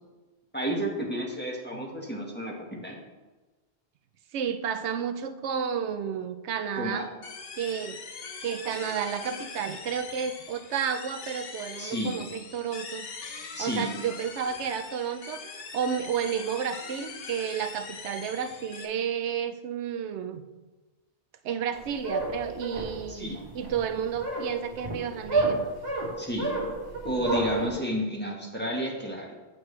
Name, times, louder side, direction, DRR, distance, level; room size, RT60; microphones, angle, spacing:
voice 1, 0.5-3.0 6.7-7.1 11.8-12.2 13.6-13.9 23.1-23.4 26.2-26.5 27.0-29.3, equal, 10° left, -2 dB, 1.2 m, -31 dB
voice 2, 4.3-7.1 7.6-8.0 8.4-13.1 13.6-15.4 15.7-20.4 21.4-25.7, right 8 dB, 90° right, 9 dB, 0.9 m, -31 dB
sound 1, 7.2-18.9, left 5 dB, 65° left, 0.9 m, -42 dB
sound 2, 21.7-27.7, right 3 dB, 60° right, 1.6 m, -30 dB
7.9 x 7.3 x 3.2 m, 1.2 s
omnidirectional pair, 1.1 m